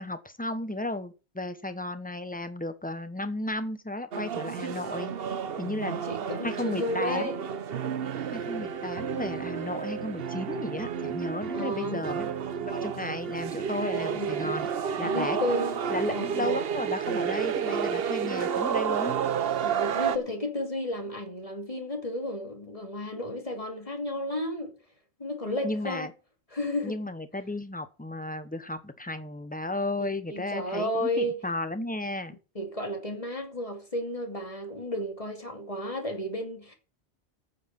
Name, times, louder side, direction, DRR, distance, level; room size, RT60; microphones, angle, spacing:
voice 1, 0.0-5.1 5.6-6.0 6.4-7.3 8.3-12.3 12.6-14.7 15.0-15.4 15.9-19.2 25.6-26.1 26.8-32.4, left 2 dB, 10° left, 1.0 m, -34 dB
sound 1, 4.1-20.2, right 7 dB, 65° right, 1.0 m, -31 dB
voice 2, 5.7-7.4 11.5-12.1 14.1-14.6 15.0-16.5 19.6-24.7 25.2-26.1 26.5-27.0 30.3-31.4 32.5-36.8, left 1 dB, 30° left, 2.6 m, -33 dB
9.2 x 8.0 x 7.6 m
omnidirectional pair, 1.1 m